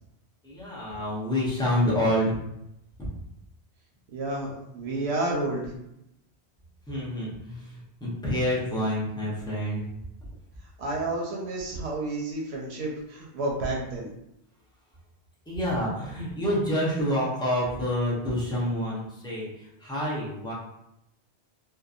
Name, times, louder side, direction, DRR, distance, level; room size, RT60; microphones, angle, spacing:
voice 1, 0.4-2.4 6.9-9.8 15.5-20.5, equal, 5° left, -6 dB, 0.5 m, -28 dB
voice 2, 4.1-5.7 10.8-14.1, right 2 dB, 80° right, -1 dB, 0.8 m, -30 dB
2.7 x 2.2 x 2.4 m, 0.82 s
omnidirectional pair, 1.1 m